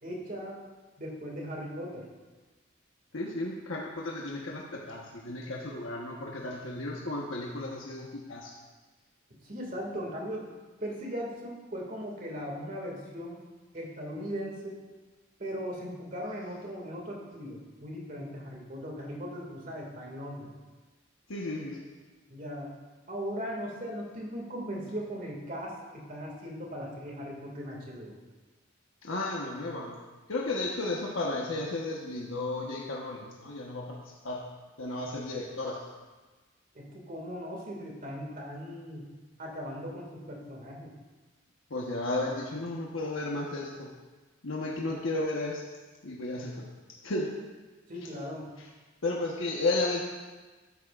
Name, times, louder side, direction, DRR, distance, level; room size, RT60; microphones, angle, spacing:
voice 1, 0.0-0.6 1.0-2.1 9.4-10.5 10.8-13.4 13.7-14.8 15.4-20.5 22.3-22.7 23.1-28.2 36.7-39.1 39.4-40.9 47.9-48.5, equal, 45° right, -1 dB, 2.2 m, -38 dB
voice 2, 3.1-8.5 21.3-21.8 29.0-29.9 30.3-33.9 34.2-34.4 34.8-35.8 41.7-43.9 44.4-45.6 46.0-46.6 47.0-47.3 48.6-48.7 49.0-50.0, left 2 dB, 90° left, -3 dB, 1.2 m, -33 dB
12.5 x 10.5 x 2.5 m, 1.3 s
head